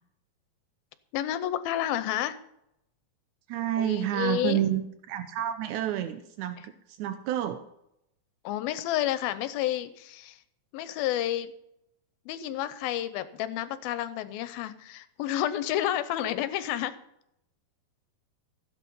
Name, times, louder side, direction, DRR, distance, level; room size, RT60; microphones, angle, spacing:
voice 1, 1.1-2.4 3.8-4.7 8.4-10.4 10.7-11.5 12.3-16.9, left 12 dB, 80° left, 12 dB, 2.5 m, -30 dB
voice 2, 3.5-7.6, right 11 dB, 85° right, 9 dB, 1.7 m, -29 dB
16.0 x 8.3 x 5.4 m, 0.78 s
omnidirectional pair, 4.3 m